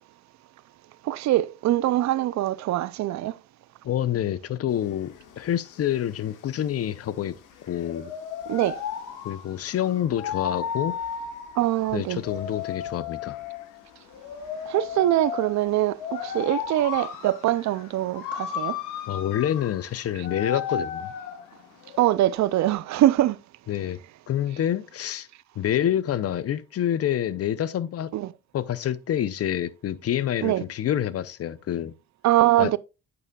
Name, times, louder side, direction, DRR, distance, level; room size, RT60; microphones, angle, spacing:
voice 1, 1.0-3.4 8.5-8.8 11.6-12.2 14.7-18.8 22.0-23.4 28.1-28.3 30.4-30.6 32.2-32.8, right 14 dB, 65° right, 0.5 m, -23 dB
voice 2, 3.8-7.4 7.7-8.1 9.2-11.0 11.9-13.4 19.1-21.1 23.7-24.0 24.3-25.3 25.6-28.1 28.5-31.9 32.6-32.7, left 10 dB, 50° left, 0.6 m, -27 dB
sound 1, 4.7-22.7, left 8 dB, 90° left, 1.2 m, -35 dB
8.8 x 6.9 x 2.3 m
cardioid pair, 90°, 30 cm